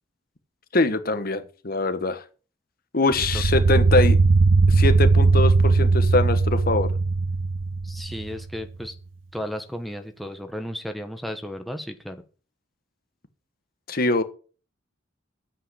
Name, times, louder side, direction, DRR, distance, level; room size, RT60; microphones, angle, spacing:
voice 1, 0.7-2.2 2.9-4.2 4.7-6.9 13.9-14.2, left 2 dB, 50° left, 10 dB, 1.3 m, -23 dB
sound 1, 3.1-8.4, right 3 dB, 80° right, 0.6 m, -19 dB
voice 2, 7.8-8.9 9.3-12.2, equal, ahead, 5 dB, 1.1 m, -34 dB
9.2 x 7.7 x 8.3 m, 0.38 s
head